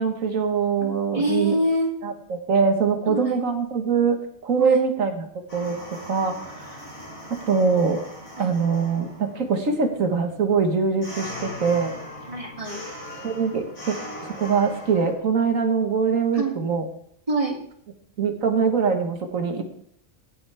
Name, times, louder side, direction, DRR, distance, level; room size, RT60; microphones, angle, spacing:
voice 1, 0.0-1.5 2.0-5.8 6.1-6.5 7.3-8.0 8.4-12.0 13.2-14.0 14.2-16.9 18.2-19.6, right 5 dB, 80° right, 4 dB, 1.9 m, -23 dB
voice 2, 0.8-1.9 3.1-3.4 4.6-4.8 8.4-8.5 12.3-12.8 16.3-16.6 17.3-17.6, right 1 dB, 25° right, -2 dB, 2.7 m, -26 dB
sound 1, 5.5-15.1, left 1 dB, 85° left, 4.6 m, -39 dB
17.0 x 7.7 x 3.5 m, 0.67 s
omnidirectional pair, 1.4 m